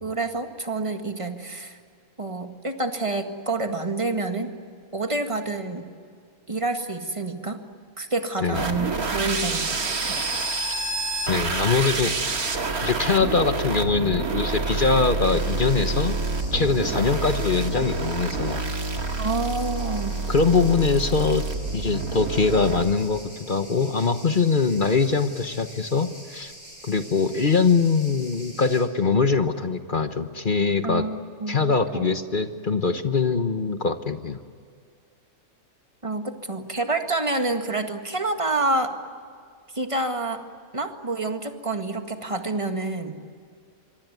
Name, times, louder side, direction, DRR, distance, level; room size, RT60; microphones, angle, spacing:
voice 1, 0.0-1.8 2.2-4.5 4.9-5.9 6.5-7.6 8.0-10.3 19.2-20.2 30.8-32.1 36.0-39.0 39.7-40.4 40.7-43.2, right 2 dB, 20° right, 6 dB, 1.8 m, -28 dB
sound 1, 8.5-22.9, right 3 dB, 85° right, 2.5 m, -28 dB
voice 2, 11.3-12.2 12.8-16.2 16.5-18.6 20.3-21.4 21.7-23.2 23.5-26.5 26.8-31.0 31.5-34.4, left 4 dB, 40° left, 9 dB, 1.2 m, -22 dB
sound 2, 15.2-28.8, equal, 85° left, 8.2 m, -45 dB
25.5 x 24.0 x 9.4 m, 2.2 s
omnidirectional pair, 1.5 m